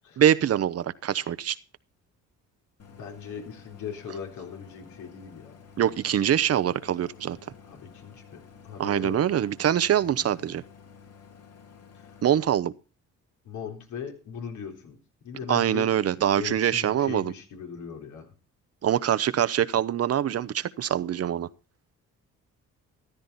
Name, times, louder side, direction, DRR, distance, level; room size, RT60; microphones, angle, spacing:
voice 1, 0.2-1.6 5.8-7.4 8.8-10.6 12.2-12.7 15.5-17.3 18.8-21.5, right 10 dB, 55° right, 0.8 m, -24 dB
Idling, 2.8-12.4, left 6 dB, 55° left, 2.8 m, -51 dB
voice 2, 2.9-5.6 7.7-8.4 8.6-9.2 10.0-10.3 11.9-12.1 13.4-15.0 15.2-15.9 16.4-18.3, left 7 dB, 75° left, 3.9 m, -39 dB
14.5 x 12.5 x 4.1 m
cardioid pair, 90°, 30 cm